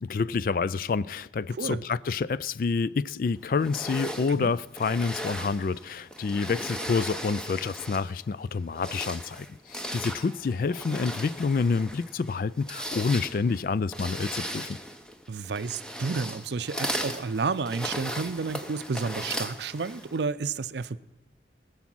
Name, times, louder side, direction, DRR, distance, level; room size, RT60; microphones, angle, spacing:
voice 1, 0.0-14.7, left 4 dB, 50° left, 0.3 m, -28 dB
sound 1, 3.6-8.2 8.6-20.2, equal, 5° left, 0.8 m, -37 dB
voice 2, 15.3-21.0, right 4 dB, 75° right, 0.5 m, -31 dB
20.5 x 7.2 x 6.1 m
head